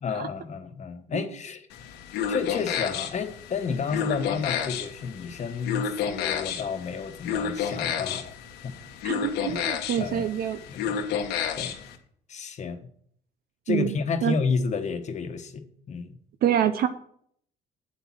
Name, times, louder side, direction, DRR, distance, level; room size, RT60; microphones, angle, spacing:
voice 1, 0.0-1.7 2.3-8.3 8.6-8.8 9.5-9.6 10.0-10.3 10.7-11.2 11.6-11.8 12.3-12.9 13.7-16.2, left 5 dB, 45° left, 8 dB, 1.2 m, -31 dB
sound 1, 1.7-11.9, left 7 dB, 85° left, 1.3 m, -31 dB
voice 2, 9.0-10.6 13.7-13.9 14.2-14.3 16.4-16.9, right 10 dB, 65° right, 9 dB, 0.7 m, -26 dB
8.4 x 7.9 x 6.0 m, 0.64 s
cardioid pair, 110°, 17 cm